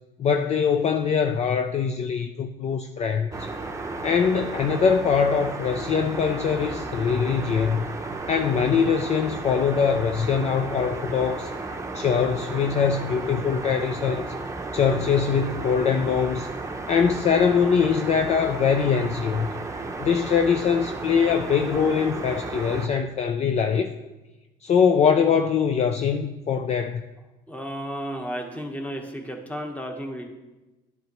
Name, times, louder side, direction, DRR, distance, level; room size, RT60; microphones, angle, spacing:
voice 1, 0.2-3.5 4.0-7.9 8.3-11.5 11.9-14.2 14.7-16.5 16.9-19.5 20.0-23.9 24.6-27.0, left 6 dB, 40° left, 6 dB, 0.4 m, -22 dB
sound 1, 3.3-22.9, right 3 dB, 15° right, 0.8 m, -33 dB
voice 2, 27.5-30.3, equal, 10° left, 3 dB, 1.2 m, -33 dB
11.0 x 8.1 x 3.0 m, 1.1 s
cardioid pair, 110°, 17 cm